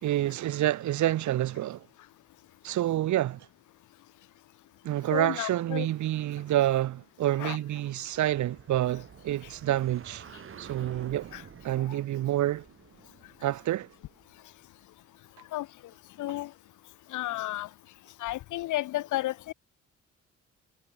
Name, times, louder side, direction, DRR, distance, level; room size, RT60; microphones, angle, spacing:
voice 1, 0.0-1.9 2.6-3.5 4.8-10.2 10.6-11.3 11.6-12.6 13.4-13.9, right 13 dB, 75° right, 1.2 m, -28 dB
voice 2, 5.1-5.9 7.4-7.6 11.3-11.4 11.8-12.0 15.5-15.7 16.2-16.5 17.1-17.7 18.2-19.5, left 16 dB, 80° left, 0.9 m, -32 dB
sound 1, 7.9-14.5, right 7 dB, 45° right, 1.9 m, -50 dB
cardioid pair, 90°, 30 cm